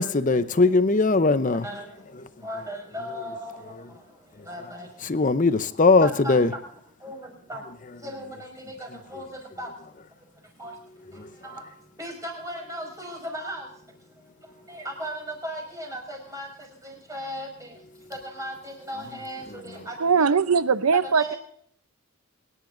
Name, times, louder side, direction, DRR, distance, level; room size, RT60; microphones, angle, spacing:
voice 1, 0.0-1.7 5.1-6.5, left 3 dB, 35° left, 0.7 m, -20 dB
voice 2, 1.5-1.9 2.4-3.8 4.5-4.9 6.0-6.4 7.0-7.6 8.0-9.3 9.6-9.7 10.6-10.7 11.4-11.6 12.0-13.7 14.7-16.5 16.8-17.7 18.1-20.3 21.0-21.4, equal, 15° right, 5.4 m, -36 dB
voice 3, 20.0-21.3, right 5 dB, 90° right, 0.7 m, -20 dB
25.0 x 11.0 x 2.6 m
head